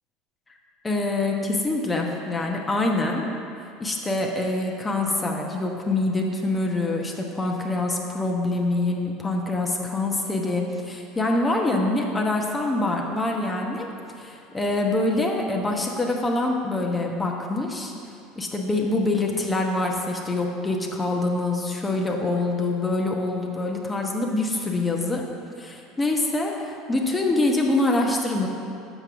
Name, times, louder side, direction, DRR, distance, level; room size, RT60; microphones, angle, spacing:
voice 1, 0.8-3.3 3.8-13.9 14.2-17.9 18.3-25.2 25.6-28.5, left 2 dB, 20° left, 1 dB, 1.0 m, -25 dB
6.0 x 5.2 x 6.1 m, 2.5 s
hypercardioid pair, 75°, 0 cm